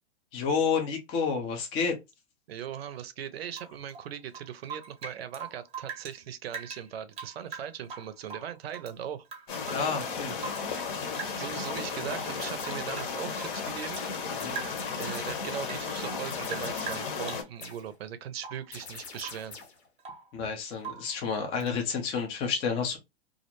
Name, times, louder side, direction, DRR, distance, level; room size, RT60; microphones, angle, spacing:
voice 1, 0.3-2.0 9.7-10.4 14.4-14.6 20.3-23.0, left 5 dB, 15° left, 0.4 m, -30 dB
voice 2, 2.5-9.3 11.4-14.0 15.0-19.6, right 9 dB, 65° right, 0.5 m, -39 dB
Rain / Drip, 3.5-6.2 6.5-8.9 9.2-10.9 11.2-11.8 12.1-14.1 14.5-15.0 15.3-17.8 18.4-18.7 19.2-19.5 19.8-20.3 20.8-21.1 21.6-21.8, right 6 dB, 20° right, 0.7 m, -43 dB
sound 1, 9.5-17.4, left 5 dB, 50° left, 0.9 m, -34 dB
sound 2, 12.4-12.9 13.9-15.5 16.3-17.3 17.6-18.0 18.7-19.9, left 4 dB, 75° left, 1.0 m, -46 dB
2.4 x 2.0 x 2.9 m
hypercardioid pair, 120°, 33 cm